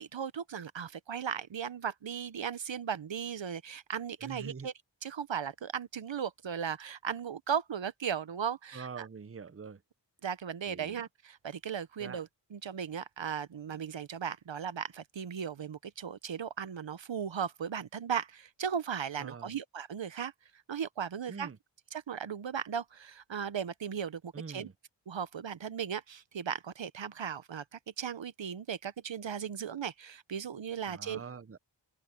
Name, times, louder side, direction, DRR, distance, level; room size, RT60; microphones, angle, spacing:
voice 1, 0.0-4.7 5.0-9.0 10.2-20.3 20.7-21.5 21.9-24.7 25.1-31.2, right 7 dB, 80° right, 0.8 m, -37 dB
voice 2, 4.2-4.7 8.7-9.8 10.7-11.0 12.0-12.2 19.2-19.5 21.3-21.6 24.3-24.7 30.9-31.6, right 5 dB, 30° right, 0.7 m, -44 dB
wide cardioid pair, 55°, 44 cm